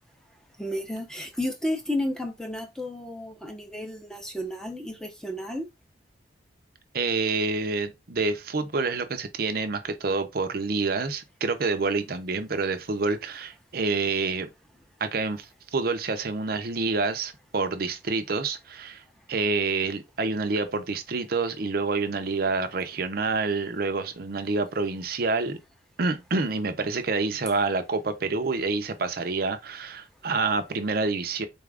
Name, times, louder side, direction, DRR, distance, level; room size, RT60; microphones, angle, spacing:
voice 1, 0.6-5.7, left 1 dB, 5° left, 0.6 m, -32 dB
voice 2, 6.9-14.5 15.0-19.0 19.3-25.6 26.0-31.5, right 3 dB, 50° right, 0.6 m, -27 dB
4.1 x 2.4 x 3.4 m
head